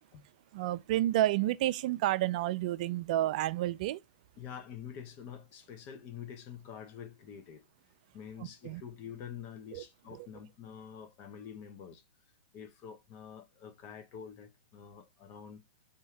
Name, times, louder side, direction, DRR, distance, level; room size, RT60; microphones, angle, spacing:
voice 1, 0.5-4.0 8.4-8.8 9.7-9.8 10.1-10.3, right 14 dB, 50° right, 0.4 m, -30 dB
voice 2, 4.4-7.6 8.1-12.0 12.5-15.6, left 8 dB, 35° left, 0.9 m, -47 dB
3.7 x 2.7 x 4.4 m
hypercardioid pair, 145°, 5 cm